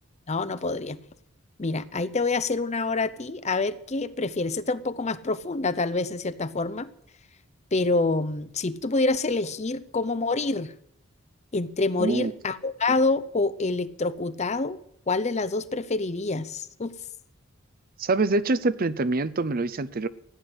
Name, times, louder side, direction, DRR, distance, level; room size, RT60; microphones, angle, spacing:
voice 1, 0.3-1.0 1.6-6.9 7.7-10.7 11.5-14.8 15.1-17.0, left 3 dB, 30° left, 14 dB, 0.6 m, -27 dB
voice 2, 12.0-12.3 18.0-20.1, right 3 dB, 40° right, 15 dB, 0.6 m, -25 dB
15.5 x 9.7 x 8.0 m, 0.73 s
head